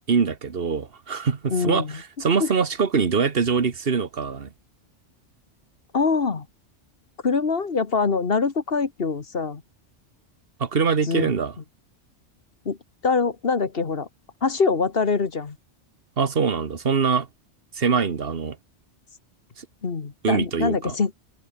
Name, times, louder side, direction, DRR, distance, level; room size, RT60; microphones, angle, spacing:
voice 1, 0.1-4.5 10.6-11.6 16.2-17.3 17.7-18.6 19.6-19.7 20.2-21.0, right 5 dB, 55° right, 1.6 m, -23 dB
voice 2, 1.5-2.0 2.4-2.5 5.9-6.5 7.2-9.6 11.1-11.3 12.7-12.8 13.0-14.1 14.4-15.6 19.8-21.1, left 4 dB, 55° left, 1.7 m, -24 dB
omnidirectional pair, 1.2 m